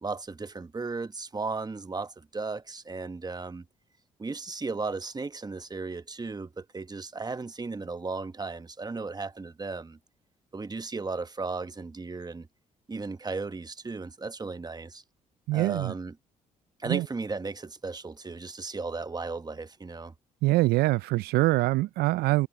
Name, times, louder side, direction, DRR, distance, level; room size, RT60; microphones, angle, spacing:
voice 1, 0.0-3.6 4.2-10.0 10.5-12.5 12.9-15.0 15.5-16.1 16.8-20.1, right 3 dB, 25° right, 1.2 m, -35 dB
voice 2, 15.5-15.9 16.9-17.1 20.4-22.5, right 19 dB, 85° right, 0.4 m, -24 dB
supercardioid pair, 60°, 16 cm